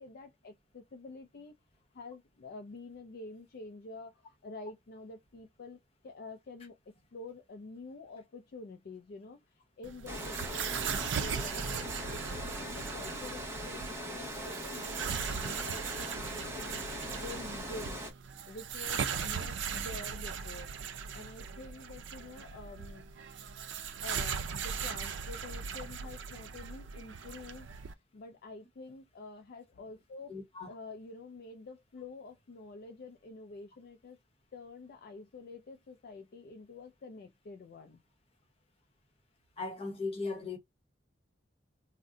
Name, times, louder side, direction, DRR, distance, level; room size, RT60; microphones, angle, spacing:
voice 1, 0.0-1.6 1.9-16.8 17.2-18.0 18.5-20.7 21.1-23.1 24.0-30.3 30.6-34.2 34.5-38.0, left 3 dB, 55° left, 0.4 m, -48 dB
sound 1, 9.8-27.9, right 7 dB, 80° right, 0.4 m, -39 dB
Water, 10.1-18.1, equal, 15° right, 0.8 m, -40 dB
voice 2, 30.3-30.7 39.6-40.6, left 3 dB, 35° left, 0.9 m, -37 dB
2.6 x 2.1 x 3.6 m
head